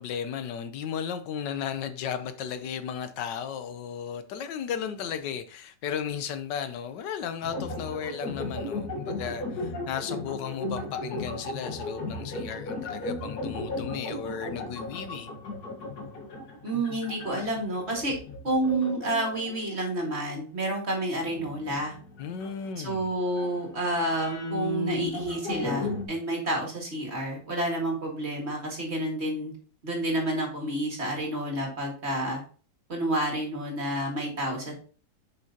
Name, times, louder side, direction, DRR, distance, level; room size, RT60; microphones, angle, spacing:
voice 1, 0.0-15.3 22.2-23.1, left 8 dB, 75° left, 1.3 m, -35 dB
sound 1, 7.4-20.3 21.2-26.1, left 2 dB, 60° left, 1.9 m, -35 dB
voice 2, 16.6-18.1 18.4-22.0 22.8-29.5 29.8-32.4 32.9-34.7, right 1 dB, 35° right, 2.1 m, -29 dB
7.5 x 5.7 x 2.8 m
omnidirectional pair, 1.9 m